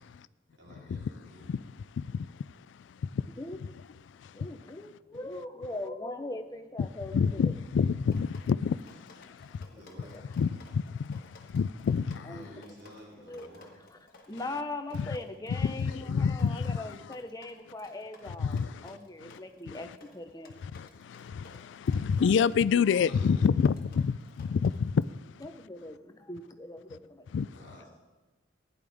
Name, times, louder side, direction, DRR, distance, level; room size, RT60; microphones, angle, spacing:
voice 1, 0.5-1.5 9.7-10.2 12.2-13.8 22.9-23.6 27.5-27.9, equal, 65° right, 3.6 m, -52 dB
voice 2, 2.0-3.3 4.2-4.4 7.1-9.7 10.4-12.4 14.9-15.1 15.6-16.8 18.4-19.4 19.7-19.8 20.6-25.4 27.3-27.5, left 6 dB, 70° left, 0.3 m, -29 dB
voice 3, 3.4-7.5 10.1-10.2 12.2-12.5 13.3-13.5 14.3-21.1 22.9-23.1 25.4-27.3, left 2 dB, 20° left, 0.7 m, -41 dB
Drip, 8.1-25.1, left 2 dB, 50° left, 1.5 m, -57 dB
16.0 x 10.0 x 3.5 m
head